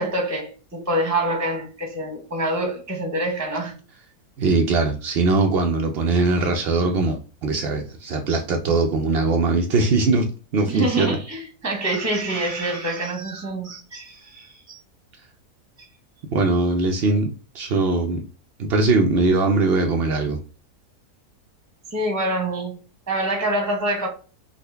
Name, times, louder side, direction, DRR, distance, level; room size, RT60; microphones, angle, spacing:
voice 1, 0.0-3.7 10.7-14.8 21.9-22.8 23.1-24.1, right 1 dB, 15° right, 0.6 m, -26 dB
voice 2, 4.4-10.2 10.5-11.2 16.3-18.2 18.6-20.4, right 3 dB, 85° right, 0.5 m, -21 dB
3.8 x 2.1 x 3.3 m
omnidirectional pair, 1.6 m